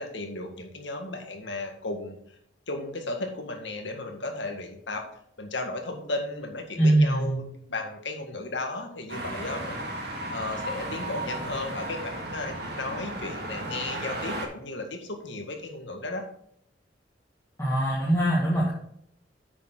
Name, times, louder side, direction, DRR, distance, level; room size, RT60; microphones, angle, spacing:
voice 1, 0.0-2.2 2.7-5.0 5.4-16.2, left 2 dB, 75° left, 3 dB, 1.9 m, -35 dB
voice 2, 6.8-7.4 17.6-18.7, right 1 dB, 15° left, -7 dB, 2.1 m, -22 dB
sound 1, 9.1-14.5, right 1 dB, 60° right, 2.2 m, -34 dB
9.7 x 7.1 x 3.9 m, 0.68 s
head